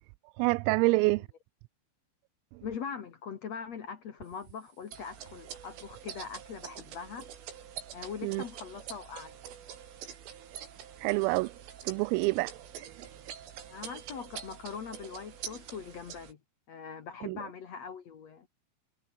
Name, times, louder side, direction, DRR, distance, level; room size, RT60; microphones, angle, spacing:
voice 1, 0.4-1.2 8.2-8.4 11.0-11.5 11.8-12.5 17.2-17.4, right 25 dB, 85° right, 3.3 m, -26 dB
voice 2, 2.6-7.3 7.9-9.4 13.7-16.4 16.7-18.5, left 6 dB, 70° left, 1.6 m, -42 dB
sound 1, 4.9-16.3, right 9 dB, 70° right, 5.8 m, -46 dB
omnidirectional pair, 6.0 m